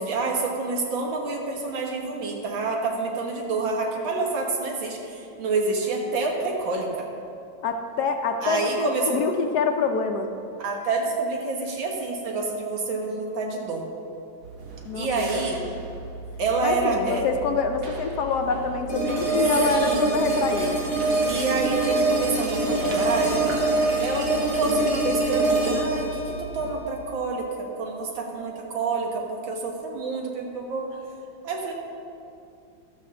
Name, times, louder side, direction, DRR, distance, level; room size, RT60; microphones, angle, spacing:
voice 1, 0.0-7.1 8.4-9.2 10.6-13.8 14.9-15.6 16.4-17.2 19.7-20.1 21.3-23.5 24.0-27.5 27.8-30.9 31.4-31.7, right 3 dB, 85° right, 1 dB, 2.1 m, -28 dB
voice 2, 7.6-10.3 14.8-15.2 16.6-20.9, left 5 dB, 70° left, 5 dB, 1.1 m, -26 dB
sound 1, 14.4-26.7, right 3 dB, 65° right, 1.7 m, -38 dB
sound 2, 18.9-27.9, right 2 dB, 40° right, 2.7 m, -25 dB
12.5 x 5.6 x 6.8 m, 2.6 s
omnidirectional pair, 2.1 m